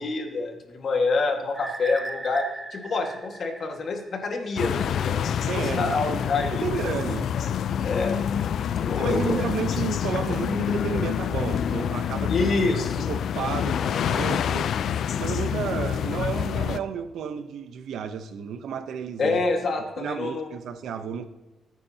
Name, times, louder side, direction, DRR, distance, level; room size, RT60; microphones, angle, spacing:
voice 1, 0.0-6.7 7.8-8.2 8.8-9.3 12.3-13.0 19.2-20.5, left 3 dB, 50° left, 3 dB, 1.8 m, -27 dB
sound 1, 1.5-4.4, right 2 dB, 10° right, 1.0 m, -38 dB
sound 2, 4.6-16.8, left 8 dB, 65° left, 0.4 m, -27 dB
voice 2, 5.5-6.0 6.5-7.3 9.0-14.7 15.2-19.4 20.0-21.3, right 7 dB, 80° right, 10 dB, 0.8 m, -32 dB
21.0 x 9.4 x 2.9 m, 1.2 s
cardioid pair, 140°, 0 cm